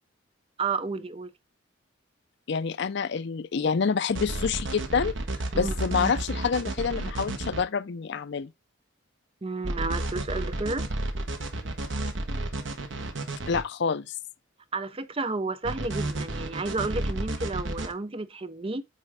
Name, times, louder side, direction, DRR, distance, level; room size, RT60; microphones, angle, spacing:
voice 1, 0.6-1.3 5.5-5.8 9.4-10.9 14.7-18.8, right 3 dB, 30° right, 0.6 m, -31 dB
voice 2, 2.5-5.1 5.5-8.5 13.5-14.1, left 5 dB, 60° left, 0.5 m, -27 dB
sound 1, 4.1-7.6 9.6-13.6 15.7-17.9, right 2 dB, 65° right, 1.1 m, -31 dB
8.6 x 4.4 x 3.5 m
head